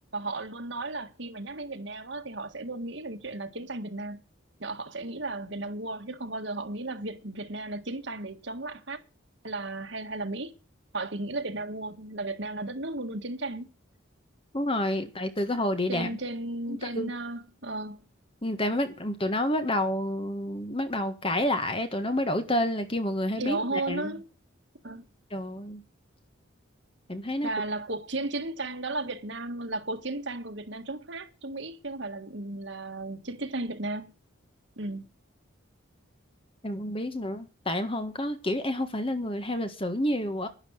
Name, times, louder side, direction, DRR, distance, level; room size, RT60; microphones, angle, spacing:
voice 1, 0.1-4.2 4.6-9.0 9.4-10.5 10.9-13.7 15.9-18.0 23.4-24.2 24.8-25.0 27.4-34.1 34.8-35.0, right 2 dB, 60° right, 1.8 m, -34 dB
voice 2, 14.5-16.1 16.7-17.1 18.4-24.1 25.3-25.8 27.1-27.5 36.6-40.5, left 1 dB, 25° left, 1.6 m, -29 dB
11.5 x 11.0 x 6.5 m
head